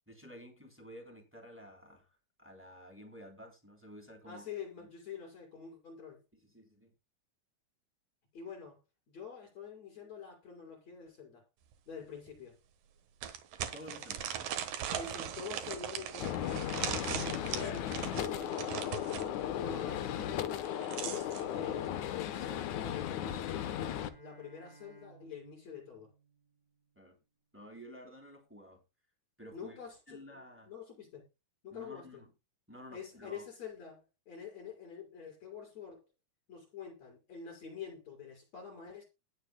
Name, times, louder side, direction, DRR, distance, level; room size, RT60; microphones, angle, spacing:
voice 1, 0.1-4.5 4.8-4.9 6.3-6.9 13.7-14.3 26.9-27.2 27.5-28.8 29.4-29.8 30.1-30.7 31.7-32.3 32.7-33.5, equal, 5° right, 2.9 m, -52 dB
voice 2, 4.3-6.2 8.3-8.8 9.1-11.4 11.9-12.6 14.9-16.8 17.1-19.2 19.6-20.7 21.0-23.7 24.2-26.1 29.5-31.2 31.6-32.2 32.9-36.0 36.5-39.0, left 6 dB, 40° left, 6.1 m, -46 dB
sound 1, 11.7-11.8 12.3-12.4 13.2-19.3 20.5-21.4, right 9 dB, 65° right, 2.8 m, -39 dB
Gunshot gunfire, 16.2-24.1, left 11 dB, 70° left, 1.9 m, -36 dB
Bowed string instrument, 20.8-27.0, right 3 dB, 15° left, 2.1 m, -59 dB
19.5 x 7.7 x 2.3 m
omnidirectional pair, 4.7 m